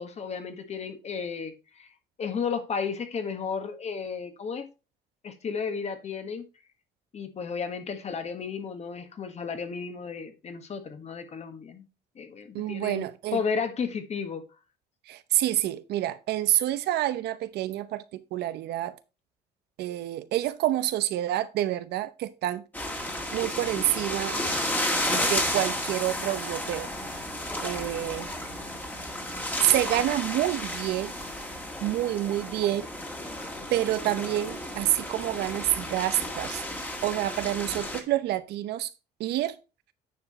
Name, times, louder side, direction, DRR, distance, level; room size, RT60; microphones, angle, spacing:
voice 1, 0.0-1.9 2.2-4.7 5.2-6.4 7.1-11.9 12.1-14.4, left 6 dB, 40° left, 1.5 m, -33 dB
voice 2, 12.5-13.4 15.1-19.0 19.8-22.6 23.3-24.4 25.1-26.9 27.6-28.3 29.6-31.1 31.8-32.9 33.7-36.6 37.0-38.9 39.2-39.6, right 14 dB, 75° right, 0.8 m, -28 dB
sound 1, 22.7-38.0, left 1 dB, 10° left, 1.8 m, -32 dB
9.5 x 4.8 x 4.2 m
cardioid pair, 110°, 17 cm